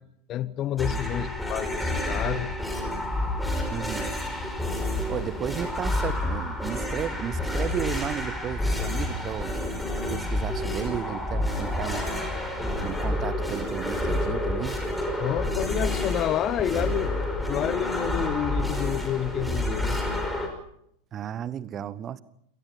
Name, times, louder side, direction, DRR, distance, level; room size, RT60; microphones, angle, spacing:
voice 1, 0.3-2.5 15.2-20.0, left 12 dB, 30° left, 19 dB, 0.8 m, -29 dB
sound 1, 0.8-20.5, left 1 dB, ahead, 5.4 m, -29 dB
voice 2, 3.7-4.1 5.1-9.5 10.1-12.1 12.8-14.9 21.1-22.2, right 9 dB, 30° right, 19 dB, 1.0 m, -33 dB
28.0 x 19.0 x 5.7 m, 0.72 s
figure-of-eight pair, 90°, 0 cm